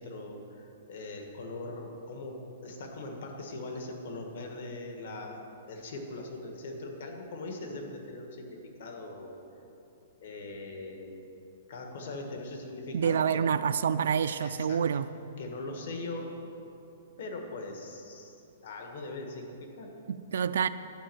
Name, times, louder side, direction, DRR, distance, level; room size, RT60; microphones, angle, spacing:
voice 1, 0.0-5.4 5.7-9.4 10.2-11.3 11.7-13.5 14.3-14.8 15.4-16.3 17.2-19.9, left 2 dB, 60° left, 3 dB, 1.5 m, -41 dB
voice 2, 12.9-15.1 20.1-20.7, right 7 dB, 70° right, 12 dB, 0.3 m, -27 dB
11.0 x 5.3 x 7.7 m, 2.8 s
hypercardioid pair, 170°, 0 cm